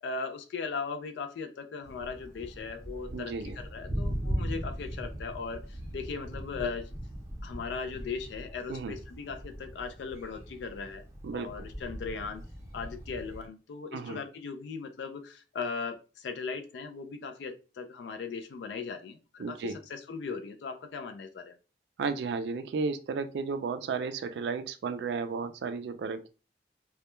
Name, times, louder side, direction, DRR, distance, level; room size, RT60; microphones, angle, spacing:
voice 1, 0.0-6.9 7.4-11.0 11.3-12.4 12.7-21.5, left 5 dB, 75° left, 7 dB, 0.3 m, -38 dB
Thunder, 1.8-13.5, equal, 15° right, 0.5 m, -39 dB
voice 2, 3.1-3.6 8.7-9.0 11.2-11.6 13.9-14.2 19.4-19.8 22.0-26.3, right 4 dB, 75° right, 11 dB, 0.3 m, -33 dB
2.2 x 2.1 x 2.9 m, 0.34 s
head